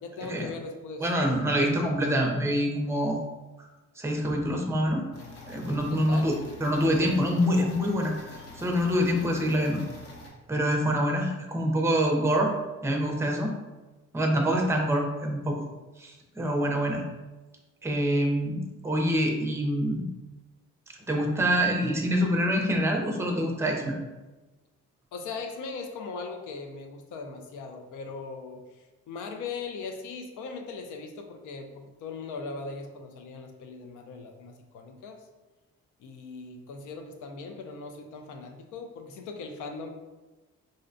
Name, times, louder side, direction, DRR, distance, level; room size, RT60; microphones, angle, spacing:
voice 1, 0.0-1.1 5.8-6.3 25.1-35.2 36.0-39.9, left 4 dB, 80° left, 4 dB, 0.5 m, -39 dB
voice 2, 1.0-3.2 4.0-5.0 5.5-6.3 6.6-9.8 10.5-12.5 12.8-13.5 14.1-15.6 16.0-17.0 17.8-20.1 21.1-24.0, equal, 10° right, 1 dB, 0.5 m, -26 dB
sound 1, 5.1-10.3, left 1 dB, 50° left, 0.8 m, -45 dB
3.8 x 2.1 x 2.5 m, 1.1 s
cardioid pair, 90°, 30 cm